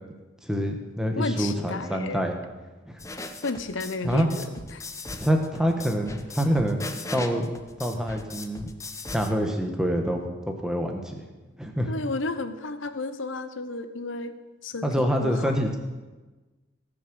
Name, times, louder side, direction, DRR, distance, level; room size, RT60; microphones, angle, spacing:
voice 1, 0.4-2.3 2.9-3.0 4.0-4.3 5.2-7.5 7.8-8.6 9.1-11.2 11.6-11.9 14.8-15.8, equal, 5° right, 3 dB, 1.2 m, -26 dB
voice 2, 1.1-2.2 3.4-4.8 11.9-14.4 14.6-15.5, left 3 dB, 90° left, 11 dB, 0.9 m, -32 dB
sound 1, 3.0-9.3, left 2 dB, 15° left, 0.7 m, -38 dB
18.0 x 6.3 x 6.2 m, 1.2 s
head